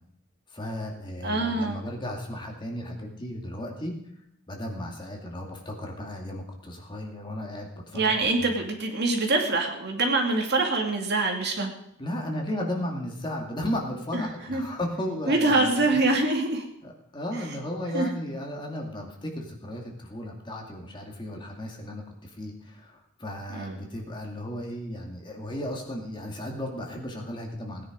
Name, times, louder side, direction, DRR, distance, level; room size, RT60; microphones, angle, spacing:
voice 1, 0.5-3.9 4.5-8.5 12.0-15.9 16.8-27.8, left 1 dB, 20° left, 1 dB, 2.3 m, -35 dB
voice 2, 1.2-1.8 7.9-11.7 14.1-14.6 15.3-16.6 17.9-18.1 23.5-23.8, right 2 dB, 50° right, 2 dB, 2.5 m, -25 dB
18.0 x 10.0 x 5.2 m, 0.75 s
head